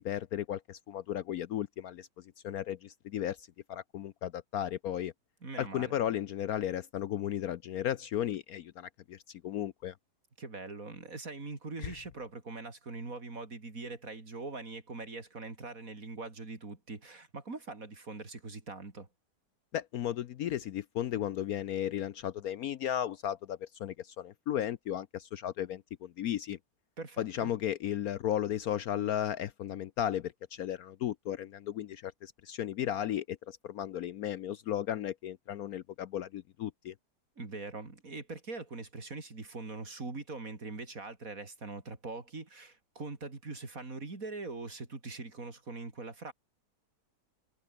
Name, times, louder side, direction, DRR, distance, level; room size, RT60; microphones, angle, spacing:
voice 1, 0.0-5.1 5.6-10.0 11.8-11.9 19.7-26.6 27.2-36.9, left 11 dB, 65° left, 1.1 m, -35 dB
voice 2, 5.4-6.0 10.4-19.1 27.0-27.5 37.4-46.3, right 3 dB, 50° right, 4.0 m, -42 dB
omnidirectional pair, 1.9 m